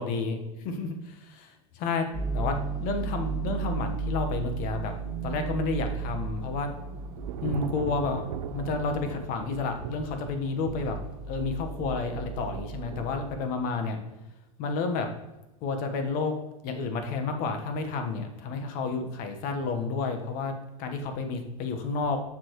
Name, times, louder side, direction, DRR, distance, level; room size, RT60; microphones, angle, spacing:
voice 1, 0.0-2.1 2.3-4.9 5.2-6.7 7.4-11.0 11.3-14.0 14.6-15.1 15.6-16.3 16.6-20.5 20.8-22.2, left 4 dB, 45° left, 6 dB, 1.3 m, -31 dB
sound 1, 2.1-13.4, right 5 dB, ahead, 1.6 m, -35 dB
Thunder / Rain, 5.9-13.3, right 9 dB, 75° right, 0.7 m, -40 dB
7.3 x 7.1 x 3.1 m, 1.0 s
supercardioid pair, 125°, 20 cm